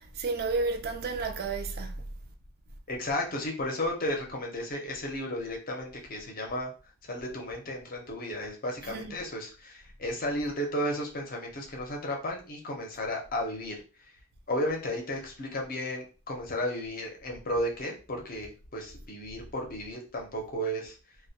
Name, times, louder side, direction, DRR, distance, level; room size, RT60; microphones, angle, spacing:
voice 1, 0.1-2.0 8.9-9.1, right 3 dB, 45° right, 0.4 m, -31 dB
voice 2, 2.9-6.7 7.1-13.7 14.5-20.9, left 1 dB, 40° left, 0.6 m, -33 dB
2.2 x 2.1 x 2.7 m
head